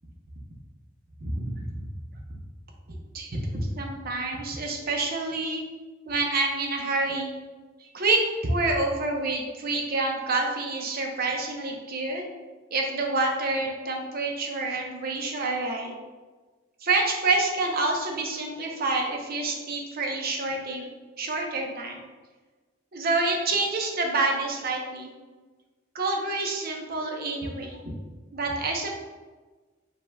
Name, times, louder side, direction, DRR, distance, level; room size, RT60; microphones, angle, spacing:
voice 1, 1.2-1.9 2.9-5.6 6.1-7.3 7.8-8.2 8.4-12.3 12.7-15.9 16.8-20.9 21.2-22.0 22.9-25.1 25.9-27.8 28.3-29.0, right 3 dB, 50° right, 1 dB, 0.7 m, -28 dB
5.2 x 2.3 x 3.4 m, 1.3 s
head